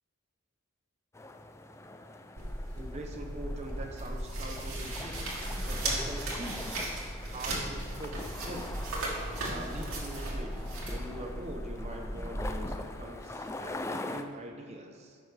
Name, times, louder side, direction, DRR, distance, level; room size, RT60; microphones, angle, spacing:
sound 1, 1.1-14.2, left 2 dB, 15° left, 0.4 m, -43 dB
sound 2, 2.4-12.5, right 1 dB, 85° right, 2.3 m, -36 dB
voice 1, 2.7-5.3 5.6-6.7 7.3-8.7 9.4-15.2, right 1 dB, 30° right, 2 dB, 0.8 m, -43 dB
15.0 x 5.8 x 3.3 m, 2.3 s
head